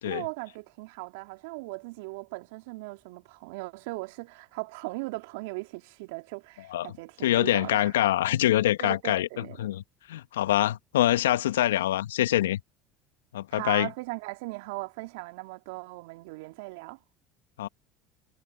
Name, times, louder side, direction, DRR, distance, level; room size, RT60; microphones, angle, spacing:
voice 1, 0.0-7.9 8.8-9.7 13.5-17.0, right 25 dB, 70° right, 3.0 m, -38 dB
voice 2, 7.2-9.8 10.1-12.6 13.3-13.9 17.6-17.7, left 13 dB, 80° left, 1.7 m, -25 dB
hypercardioid pair, 70°, 0 cm